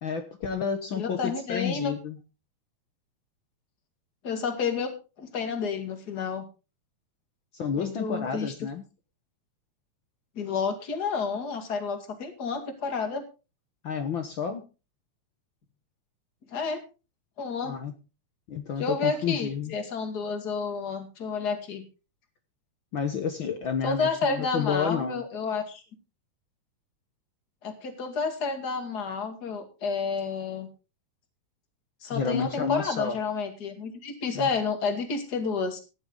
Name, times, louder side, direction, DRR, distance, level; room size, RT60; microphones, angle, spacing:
voice 1, 0.0-2.2 7.5-8.8 13.8-14.6 17.6-17.9 18.5-19.7 22.9-25.2 32.1-33.1 34.3-34.5, left 6 dB, 55° left, 8 dB, 1.4 m, -30 dB
voice 2, 0.9-1.9 4.2-6.4 7.8-8.5 10.4-13.2 16.5-16.8 17.4-17.7 18.8-21.8 23.8-25.8 27.6-30.7 32.0-35.8, left 5 dB, 35° left, 7 dB, 2.5 m, -30 dB
15.5 x 10.5 x 3.8 m, 0.31 s
omnidirectional pair, 3.4 m